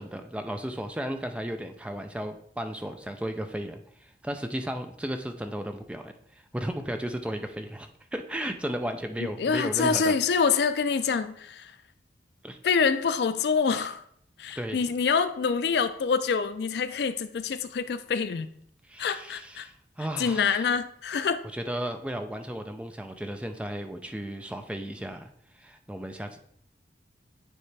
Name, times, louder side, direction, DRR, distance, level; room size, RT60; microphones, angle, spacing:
voice 1, 0.0-10.2 12.4-12.6 14.6-14.8 18.9-20.7 21.5-25.3 25.5-26.4, equal, 5° right, 6 dB, 0.4 m, -34 dB
voice 2, 9.4-11.7 12.6-14.0 14.4-18.5 19.0-19.7 20.2-21.4, left 5 dB, 65° left, 12 dB, 0.4 m, -26 dB
9.3 x 3.2 x 3.2 m, 0.67 s
head